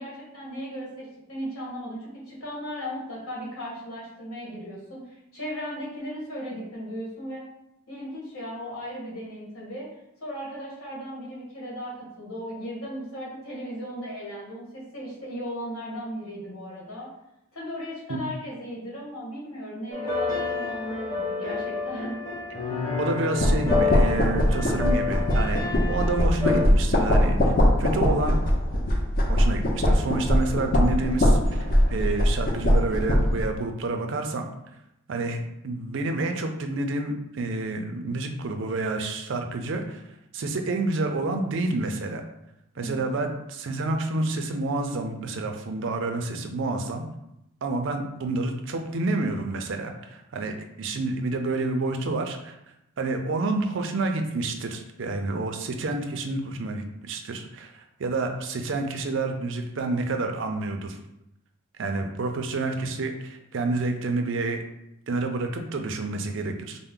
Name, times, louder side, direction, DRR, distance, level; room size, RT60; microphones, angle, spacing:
voice 1, 0.0-7.4 7.9-9.9 10.2-17.1 17.5-22.2 42.7-43.0, equal, 70° left, -4 dB, 1.5 m, -36 dB
sound 1, 19.9-26.6, left 4 dB, 15° left, 0.9 m, -29 dB
voice 2, 23.0-25.6 25.9-27.5 27.8-28.4 29.3-34.5 35.1-40.0 40.3-42.2 42.8-47.0 47.6-52.5 53.0-61.0 61.8-64.6 65.1-66.8, right 2 dB, 55° right, 5 dB, 0.4 m, -29 dB
sound 2, 23.4-33.5, equal, 40° left, 0.6 m, -22 dB
4.3 x 2.1 x 3.7 m, 0.83 s
head